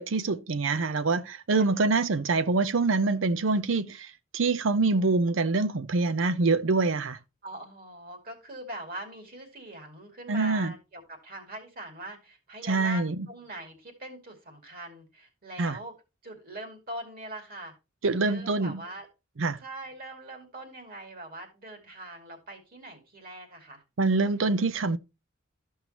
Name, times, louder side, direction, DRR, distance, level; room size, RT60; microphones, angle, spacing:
voice 1, 0.0-7.2 10.3-10.7 12.6-13.2 15.6-15.8 18.0-18.8 19.4-19.6 24.0-25.0, right 3 dB, 70° right, 0.6 m, -25 dB
voice 2, 1.5-1.9 7.4-15.9 16.2-17.7 18.0-19.1 19.6-23.8, right 1 dB, 50° right, 2.6 m, -42 dB
13.5 x 5.6 x 2.9 m
head